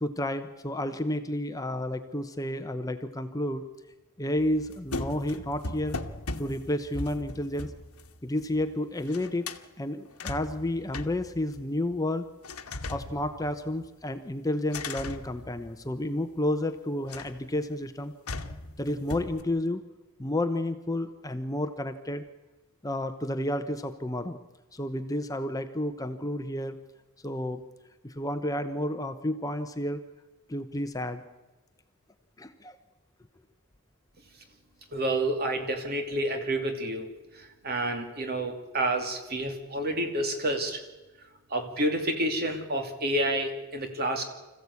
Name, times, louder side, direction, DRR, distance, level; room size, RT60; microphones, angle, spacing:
voice 1, 0.0-3.6 4.2-6.0 6.4-7.7 8.2-9.5 9.8-12.3 12.9-18.1 18.8-19.8 20.2-22.2 22.8-24.4 24.7-26.8 27.2-27.6 28.0-30.0 30.5-31.2 32.4-32.8, left 1 dB, 15° left, 8 dB, 0.8 m, -31 dB
sound 1, 4.4-8.8 9.0-9.7 10.1-12.0 12.4-14.0 14.7-16.1 17.1-17.5 18.3-19.4, left 2 dB, 90° left, 1.3 m, -39 dB
voice 2, 34.9-37.1 37.4-40.8 41.5-44.2, right 1 dB, 45° right, 5 dB, 2.7 m, -29 dB
25.5 x 15.0 x 8.4 m, 1.1 s
head